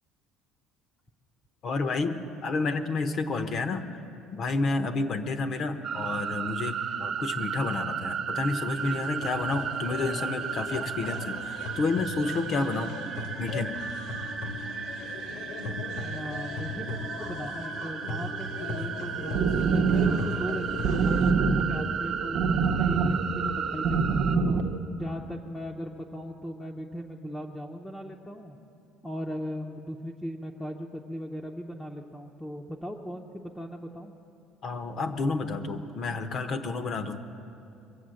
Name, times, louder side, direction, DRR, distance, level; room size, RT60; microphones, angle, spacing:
voice 1, 1.6-4.0 4.3-13.0 13.4-13.8 34.6-37.2, left 3 dB, 40° left, 8 dB, 0.8 m, -30 dB
sound 1, 5.8-24.4, right 7 dB, 40° right, 1.1 m, -34 dB
sound 2, 8.7-21.3, left 3 dB, 80° left, 1.6 m, -38 dB
voice 2, 15.9-24.6 24.9-28.6 29.0-34.1, equal, 5° left, -1 dB, 0.7 m, -38 dB
sound 3, 19.2-24.8, right 4 dB, 65° right, 0.8 m, -26 dB
22.5 x 7.7 x 7.6 m, 2.7 s
cardioid pair, 145°, 0 cm